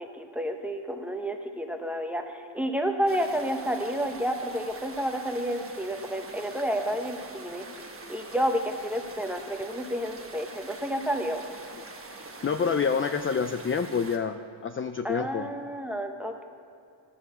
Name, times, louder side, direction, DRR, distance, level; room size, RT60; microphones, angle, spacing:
voice 1, 0.0-7.6 8.1-11.4 15.0-16.4, equal, 5° right, 4 dB, 1.0 m, -30 dB
sound 1, 3.1-14.2, right 3 dB, 30° right, 1.2 m, -44 dB
voice 2, 12.4-14.4 14.6-15.4, left 6 dB, 30° left, 7 dB, 0.4 m, -27 dB
12.5 x 7.0 x 7.0 m, 2.6 s
wide cardioid pair, 105°, 47 cm